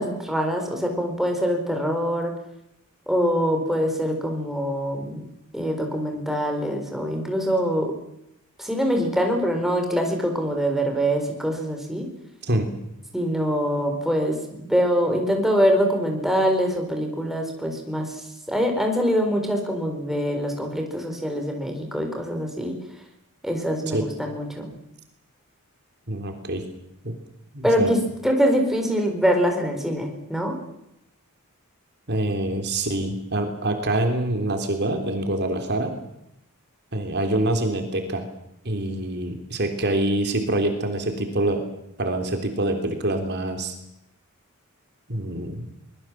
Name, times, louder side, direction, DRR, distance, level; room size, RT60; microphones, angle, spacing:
voice 1, 0.0-2.3 3.1-5.2 5.5-7.9 8.6-12.1 13.1-14.4 14.7-22.8 23.4-24.7 27.6-30.6, equal, ahead, 3 dB, 4.5 m, -24 dB
voice 2, 26.1-26.6 27.0-27.1 27.5-27.9 32.1-36.0 36.9-38.2 38.6-41.6 42.0-43.7 45.1-45.7, right 1 dB, 50° right, 5 dB, 3.4 m, -25 dB
24.5 x 21.0 x 7.5 m, 0.82 s
head